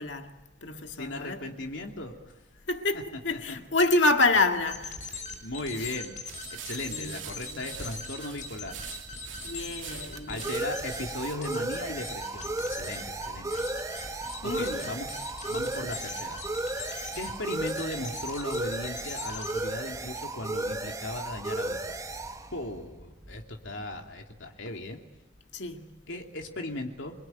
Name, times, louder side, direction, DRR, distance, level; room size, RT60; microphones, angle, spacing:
voice 1, 0.0-1.5 2.7-5.4 5.7-5.9 6.8-7.6 9.4-10.6 14.4-14.9 24.7-24.8 25.5-25.9, left 2 dB, 70° left, 2.1 m, -28 dB
voice 2, 0.9-2.1 3.3-3.6 5.4-6.1 6.6-8.8 10.3-13.6 14.4-15.1 15.5-16.4 17.1-21.9 22.5-25.0 26.1-27.1, left 1 dB, 90° left, 3.0 m, -37 dB
sound 1, 4.4-19.8, left 3 dB, 45° left, 6.9 m, -41 dB
sound 2, 6.3-11.4, right 11 dB, 85° right, 2.5 m, -45 dB
sound 3, 8.6-23.9, right 2 dB, 20° right, 1.0 m, -35 dB
29.0 x 22.5 x 9.3 m
head